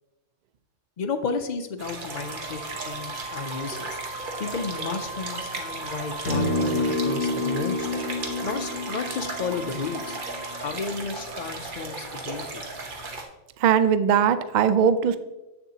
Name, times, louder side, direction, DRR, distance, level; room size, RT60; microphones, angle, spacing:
voice 1, 1.0-4.0 4.4-7.9 8.4-10.2 10.6-12.7, left 4 dB, 60° left, 6 dB, 0.4 m, -32 dB
sound 1, 1.8-13.2, right 3 dB, 45° right, 1.0 m, -36 dB
Wind instrument woodwind instrument, 2.1-10.7, right 2 dB, 65° right, 1.8 m, -40 dB
sound 2, 6.3-10.8, left 2 dB, 80° left, 1.2 m, -29 dB
voice 2, 13.6-15.2, right 7 dB, 80° right, 12 dB, 0.4 m, -20 dB
7.9 x 6.8 x 2.8 m, 1.0 s
omnidirectional pair, 1.3 m